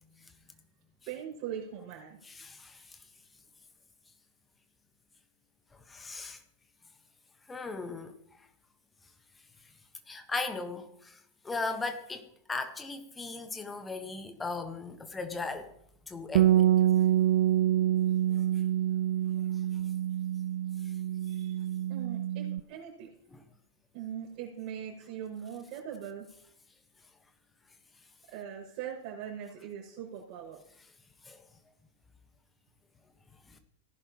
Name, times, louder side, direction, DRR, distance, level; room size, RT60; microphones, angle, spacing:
voice 1, 1.0-2.2 21.2-23.4 23.9-26.3 28.3-30.6, right 9 dB, 40° right, 6.0 m, -41 dB
voice 2, 2.2-3.0 5.7-6.4 7.5-8.5 9.6-9.7 10.1-15.7 16.1-16.7 18.3-18.4 20.8-20.9 23.3-23.4 31.2-31.5 33.4-33.6, left 3 dB, 15° left, 1.4 m, -38 dB
Bass guitar, 16.3-22.6, right 12 dB, 55° right, 0.4 m, -26 dB
18.5 x 10.5 x 3.1 m
figure-of-eight pair, 90°, 0 cm